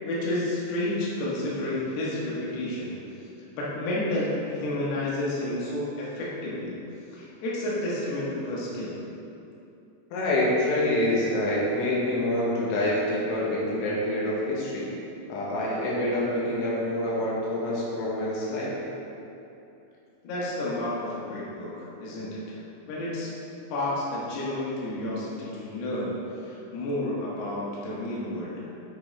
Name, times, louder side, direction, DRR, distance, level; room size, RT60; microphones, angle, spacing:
voice 1, 0.0-3.0 3.5-6.8 7.1-9.0 20.2-22.4 22.9-23.3 23.7-26.1 26.4-28.6, left 1 dB, 65° left, -7 dB, 3.1 m, -30 dB
voice 2, 10.1-14.9 15.3-18.7, left 1 dB, 85° left, -6 dB, 3.7 m, -26 dB
8.6 x 4.7 x 4.3 m, 2.8 s
omnidirectional pair, 5.4 m